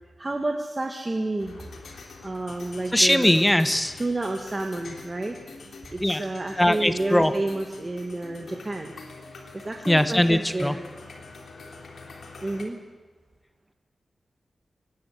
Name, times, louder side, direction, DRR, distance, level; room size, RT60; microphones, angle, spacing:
voice 1, 0.2-1.6 2.2-3.3 4.0-5.4 5.9-8.9 9.5-10.8 12.4-12.8, right 2 dB, 25° right, 2 dB, 1.7 m, -30 dB
sound 1, 1.4-12.7, left 3 dB, 85° left, 3.2 m, -45 dB
voice 2, 2.9-3.9 6.0-6.2 6.6-7.3 9.9-10.8, left 1 dB, 5° left, 10 dB, 1.0 m, -20 dB
25.0 x 19.5 x 8.2 m, 1.4 s
wide cardioid pair, 165°, 0 cm